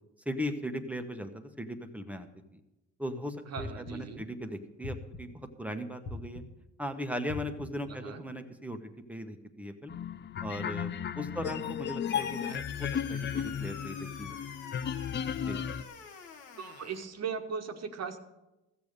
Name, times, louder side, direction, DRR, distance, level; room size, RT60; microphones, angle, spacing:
voice 1, 0.2-2.6 3.0-6.4 6.8-9.9 10.4-14.4 15.4-15.6, equal, 5° right, 6 dB, 1.1 m, -38 dB
voice 2, 3.5-4.3 7.8-8.2 11.4-11.6 16.6-18.2, right 6 dB, 60° right, 5 dB, 1.2 m, -38 dB
sound 1, 3.6-4.2 4.8-5.5 6.1-6.7 7.3-7.9, left 2 dB, 55° left, 1.9 m, -42 dB
sound 2, 9.9-15.8, left 8 dB, 40° left, 0.4 m, -35 dB
sound 3, 12.1-17.1, left 6 dB, 85° left, 1.4 m, -46 dB
15.0 x 7.0 x 6.5 m, 0.99 s
cardioid pair, 90°, 30 cm